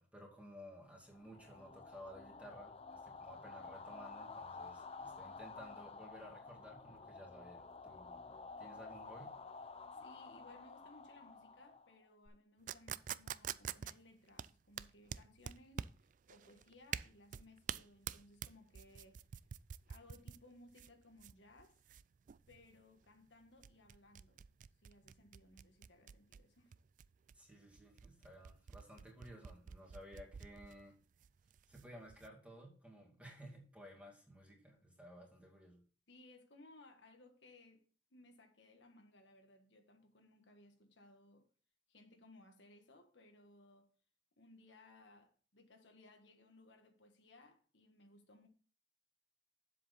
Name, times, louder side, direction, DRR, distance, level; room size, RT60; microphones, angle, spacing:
voice 1, 0.0-8.2 8.6-9.3 27.3-31.0 31.7-35.8, equal, 5° right, 2.4 m, -55 dB
sound 1, 1.1-12.3, left 4 dB, 35° left, 0.6 m, -51 dB
voice 2, 9.9-19.2 19.9-21.8 22.5-24.5 24.8-26.7 36.1-41.5 41.9-43.9 44.4-48.5, left 2 dB, 80° left, 1.5 m, -62 dB
sound 2, 12.7-32.3, right 9 dB, 45° right, 0.3 m, -48 dB
7.7 x 7.5 x 4.1 m
head